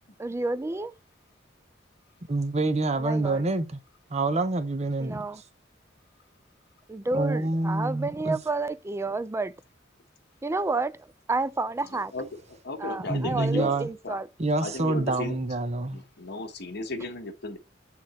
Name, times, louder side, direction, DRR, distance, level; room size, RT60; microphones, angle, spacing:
voice 1, 0.2-0.9 3.0-3.4 5.0-5.4 6.9-9.6 10.4-12.1 12.8-14.3, right 3 dB, 15° right, 0.4 m, -30 dB
voice 2, 2.3-3.8 4.1-5.2 7.1-8.4 13.1-13.9 14.4-16.0, right 2 dB, 35° right, 0.8 m, -27 dB
voice 3, 11.8-13.7 14.0-14.2 14.6-15.4 15.8-17.6, left 2 dB, 60° left, 1.2 m, -35 dB
7.8 x 3.8 x 4.2 m
head